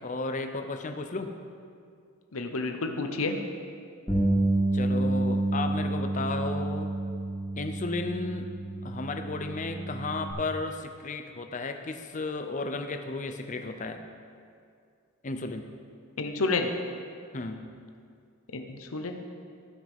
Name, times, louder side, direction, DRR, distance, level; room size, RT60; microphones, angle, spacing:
voice 1, 0.0-1.3 4.7-6.9 7.6-8.5 8.8-14.0 15.2-15.7 17.3-17.7, left 3 dB, 35° left, 7 dB, 0.6 m, -34 dB
voice 2, 2.3-3.4 16.2-16.7 18.5-19.2, left 3 dB, 80° left, 5 dB, 0.8 m, -30 dB
Bass guitar, 4.1-10.3, right 2 dB, 10° left, 2.0 m, -29 dB
17.0 x 6.1 x 3.6 m, 2.3 s
head